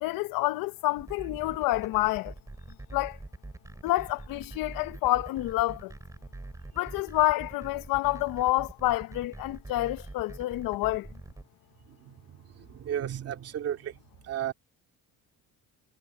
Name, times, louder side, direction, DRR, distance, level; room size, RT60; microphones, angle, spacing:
voice 1, 0.0-2.3 2.9-3.2 3.8-5.9 6.8-11.1, left 17 dB, 80° left, 0.8 m, -28 dB
sound 1, 1.0-11.4, right 2 dB, 10° right, 6.3 m, -44 dB
voice 2, 11.9-14.0 14.2-14.5, right 10 dB, 45° right, 2.6 m, -34 dB
cardioid pair, 170°, 34 cm